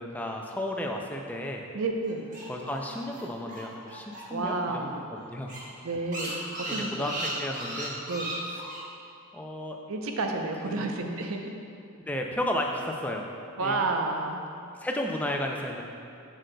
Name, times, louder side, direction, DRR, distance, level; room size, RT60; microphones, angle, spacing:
voice 1, 0.0-1.6 2.5-5.6 6.7-8.0 8.5-8.6 9.3-9.8 10.7-10.9 12.1-13.3 13.6-13.9 14.8-15.8, left 1 dB, 5° left, 1 dB, 0.4 m, -33 dB
voice 2, 1.7-2.3 4.3-5.1 5.8-6.4 6.7-7.2 8.1-8.3 9.9-11.5 13.6-14.5, right 3 dB, 65° right, 3 dB, 0.6 m, -30 dB
sound 1, 2.0-4.5 4.8-4.9 5.2-5.3 5.5-8.8, right 1 dB, 35° right, 1.1 m, -36 dB
7.7 x 6.3 x 2.2 m, 2.6 s
head